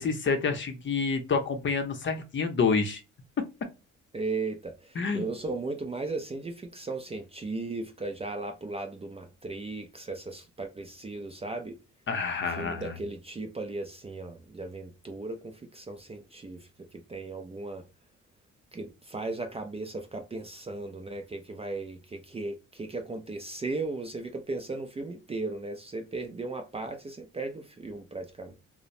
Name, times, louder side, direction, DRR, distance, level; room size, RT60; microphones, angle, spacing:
voice 1, 0.0-3.0 4.9-5.3 12.1-13.0, left 5 dB, 40° left, 0.6 m, -28 dB
voice 2, 4.1-11.8 12.5-17.9 18.7-28.5, right 3 dB, 20° right, 0.4 m, -36 dB
2.9 x 2.0 x 2.5 m
cardioid pair, 90°, 30 cm